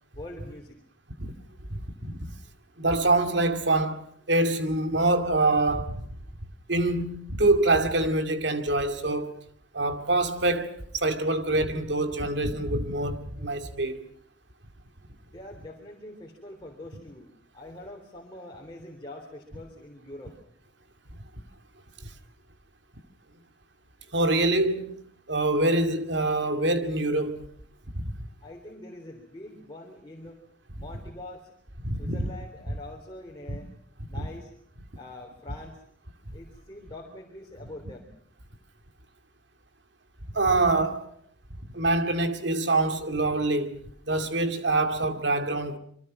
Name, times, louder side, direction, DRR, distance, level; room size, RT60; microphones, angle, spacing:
voice 1, 0.1-0.8 15.3-17.3 17.5-20.4 28.4-30.4 30.8-31.5 32.0-33.7 34.1-34.5 35.0-35.8 36.3-38.1, left 1 dB, 25° left, 3.5 m, -44 dB
voice 2, 1.7-2.3 2.8-6.0 6.7-9.4 9.7-14.0 24.1-25.0 25.3-27.5 28.0-28.1 31.8-32.2 33.5-33.6 34.2-34.3 40.3-41.1 41.7-43.8 44.1-45.8, right 2 dB, 65° right, 2.3 m, -25 dB
27.0 x 24.0 x 6.2 m
head